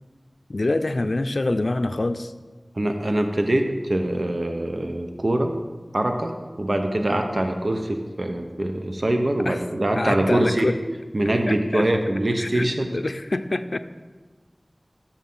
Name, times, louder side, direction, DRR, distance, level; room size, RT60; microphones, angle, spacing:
voice 1, 0.5-2.3 9.5-9.6 10.0-10.8 11.5-11.8 12.4-13.8, left 2 dB, 75° left, 10 dB, 0.5 m, -25 dB
voice 2, 2.7-5.5 5.9-10.7 11.1-12.9, right 1 dB, 60° right, 4 dB, 1.0 m, -23 dB
12.5 x 7.2 x 5.6 m, 1.3 s
wide cardioid pair, 55°, 0 cm